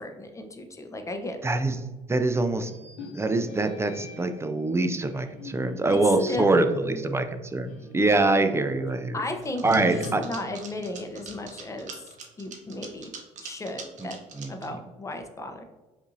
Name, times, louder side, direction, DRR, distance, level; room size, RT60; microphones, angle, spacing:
voice 1, 0.0-1.4 5.9-6.0 6.3-6.5 6.8-7.1 9.1-11.9 12.4-13.1 13.4-14.2 14.5-15.6, left 2 dB, 20° left, 5 dB, 0.7 m, -35 dB
voice 2, 1.4-1.8 2.1-2.7 3.1-9.2 9.6-10.2 14.0-14.1 14.4-14.5, right 2 dB, 15° right, 8 dB, 0.4 m, -24 dB
sound 1, 2.6-4.5 5.1-8.0 8.4-8.5 9.6-11.7, left 2 dB, 80° left, 0.8 m, -40 dB
sound 2, 9.4-14.7, right 5 dB, 50° right, 0.8 m, -42 dB
5.2 x 2.6 x 2.6 m, 1.2 s
hypercardioid pair, 65°, 16 cm